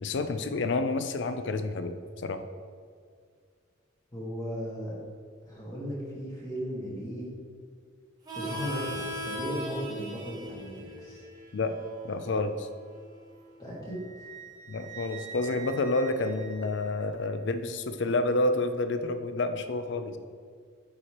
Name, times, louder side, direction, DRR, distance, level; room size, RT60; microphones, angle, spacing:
voice 1, 0.0-2.4 11.5-11.7 12.0-12.7 14.7-20.2, left 2 dB, 60° left, 9 dB, 0.4 m, -29 dB
voice 2, 4.1-5.0 5.4-7.3 8.3-11.2 13.6-14.0, equal, 20° left, -6 dB, 1.7 m, -36 dB
Harmonica, 8.3-13.5, equal, 20° right, 1.0 m, -39 dB
Wind instrument woodwind instrument, 13.8-17.3, right 8 dB, 35° right, 0.5 m, -46 dB
8.3 x 4.9 x 2.9 m, 2.1 s
head